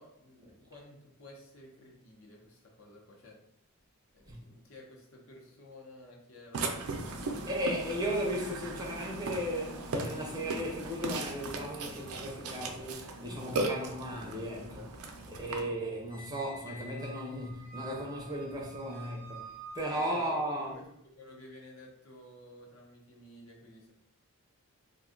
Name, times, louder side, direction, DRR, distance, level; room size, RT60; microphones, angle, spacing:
voice 1, 0.0-3.4 4.1-7.6 15.0-15.8 18.9-19.2 19.9-23.9, left 1 dB, 65° left, 0.7 m, -53 dB
Burping eructation, 6.5-15.6, right 2 dB, 80° right, 0.5 m, -37 dB
voice 2, 7.5-15.0 15.4-19.5 19.7-20.8, equal, 15° right, 0.5 m, -36 dB
Squeak, 16.1-20.6, right 3 dB, 45° left, 1.0 m, -49 dB
2.5 x 2.3 x 3.7 m
head